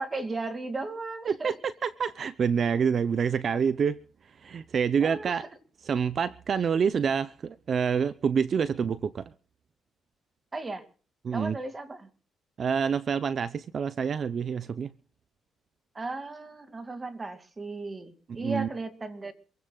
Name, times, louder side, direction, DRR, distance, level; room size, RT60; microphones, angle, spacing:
voice 1, 0.0-1.5 5.0-5.4 10.5-10.8 11.3-12.1 15.9-19.3, right 3 dB, 25° right, 2.4 m, -35 dB
voice 2, 1.3-4.0 4.3-5.4 5.8-9.2 11.2-11.6 12.6-14.9 18.3-18.7, right 6 dB, 50° right, 0.7 m, -27 dB
27.0 x 16.5 x 2.4 m
cardioid pair, 90°, 0 cm